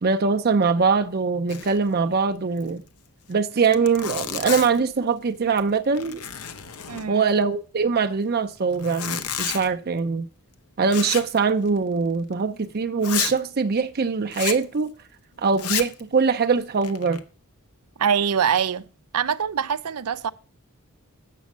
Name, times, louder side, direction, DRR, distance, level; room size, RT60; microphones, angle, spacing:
voice 1, 0.0-2.8 3.3-6.2 7.1-10.3 10.8-14.9 15.4-17.2, right 5 dB, 45° right, 0.5 m, -22 dB
Zipper (clothing), 1.5-1.9 2.1-2.2 2.6-2.7 3.3-3.4 3.6-4.9 5.4-5.7 5.9-7.4 8.7-9.7 10.9-11.4 11.7-11.8 12.3-12.4 13.0-13.4 14.3-14.6 15.5-16.0 16.6-17.2, left 9 dB, 90° left, 1.0 m, -31 dB
voice 2, 6.9-7.3 18.0-18.9 19.1-20.3, right 7 dB, 90° right, 0.6 m, -24 dB
8.4 x 6.2 x 7.2 m
head